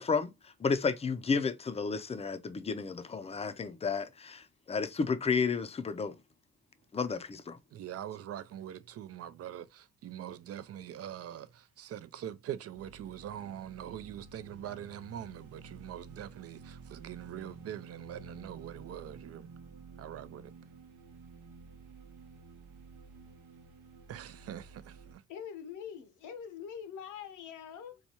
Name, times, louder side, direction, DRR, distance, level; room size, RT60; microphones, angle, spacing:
voice 1, 0.0-6.1 6.9-7.6, left 5 dB, 20° left, 0.5 m, -32 dB
voice 2, 7.7-9.6 10.0-11.5 11.8-19.5 20.0-20.5 24.1-24.8, right 10 dB, 55° right, 0.5 m, -43 dB
sound 1, 12.7-25.1, right 4 dB, 80° right, 0.8 m, -52 dB
voice 3, 25.3-28.0, left 8 dB, 80° left, 0.8 m, -44 dB
4.1 x 2.3 x 2.9 m
cardioid pair, 90°, 30 cm